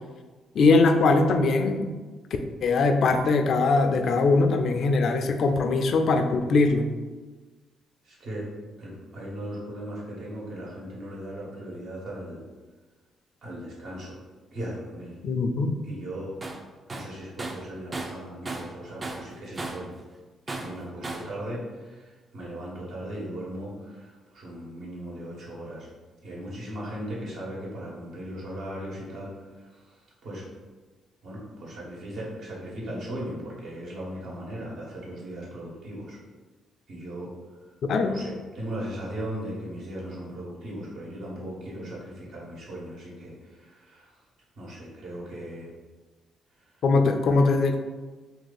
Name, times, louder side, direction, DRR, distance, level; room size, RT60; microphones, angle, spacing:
voice 1, 0.5-1.9 2.6-6.8 15.2-15.7 37.9-38.2 46.8-47.8, left 3 dB, 65° left, 6 dB, 0.4 m, -21 dB
voice 2, 8.0-8.5 8.8-12.4 13.4-14.2 14.5-15.2 15.8-16.3 16.9-19.9 20.5-25.9 26.2-30.5 31.2-36.2 36.9-37.3 38.0-44.2 44.5-45.7, right 1 dB, 70° right, -5 dB, 1.4 m, -38 dB
Tools, 16.4-16.6 16.9-18.8 19.0-19.9 20.5-21.3, right 2 dB, 35° right, 0.5 m, -35 dB
2.8 x 2.7 x 3.9 m, 1.3 s
supercardioid pair, 60°, 0 cm